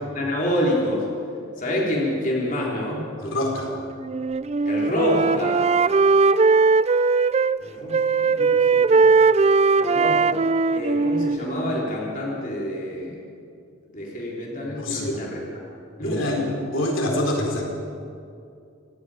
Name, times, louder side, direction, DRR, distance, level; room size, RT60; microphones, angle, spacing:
voice 1, 0.1-1.1 1.6-3.0 4.7-5.7 7.6-9.1 9.7-10.5 10.7-13.2 13.9-15.4 16.0-16.5, left 1 dB, 40° left, -3 dB, 3.8 m, -27 dB
voice 2, 3.2-3.7 14.7-15.2 16.0-17.6, left 1 dB, 75° left, 0 dB, 3.9 m, -25 dB
Wind instrument woodwind instrument, 4.1-7.6 7.9-11.9, right 4 dB, 30° right, 0.4 m, -19 dB
27.0 x 19.5 x 5.1 m, 2.5 s
head